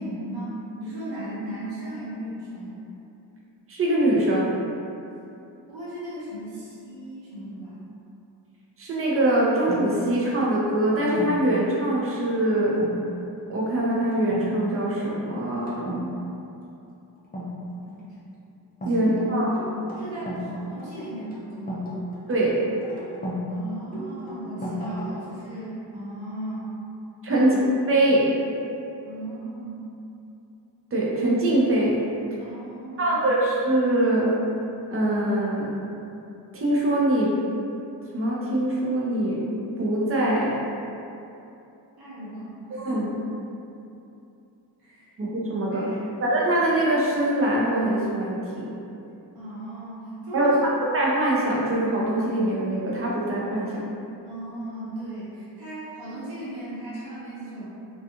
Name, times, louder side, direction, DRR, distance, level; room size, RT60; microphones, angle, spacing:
voice 1, 0.0-2.8 5.7-7.8 17.8-18.2 18.8-19.0 19.9-21.9 23.5-26.8 27.3-27.5 29.0-29.9 32.4-33.2 42.0-43.1 44.8-45.1 45.7-46.1 49.3-50.6 54.2-57.7, right 1 dB, 60° right, -10 dB, 1.0 m, -36 dB
voice 2, 3.7-4.5 8.8-12.8 13.5-16.1 18.9-19.6 22.3-22.6 27.2-27.6 27.9-28.3 30.9-32.0 33.0-34.3 34.9-35.8 36.5-37.4 38.1-39.4 39.8-40.6 42.7-43.1 45.2-45.9 46.2-48.7 50.3-53.8, right 1 dB, 30° right, -4 dB, 0.6 m, -23 dB
sound 1, 9.7-11.5 12.7-13.0 13.4-13.7 14.1-14.5 14.8-15.2 15.7-16.1 17.3-18.0 18.8-20.5 20.8-23.5 23.9-25.4, equal, 20° left, 0.6 m, -35 dB
2.4 x 2.3 x 2.7 m, 2.8 s
cardioid pair, 80°, 43 cm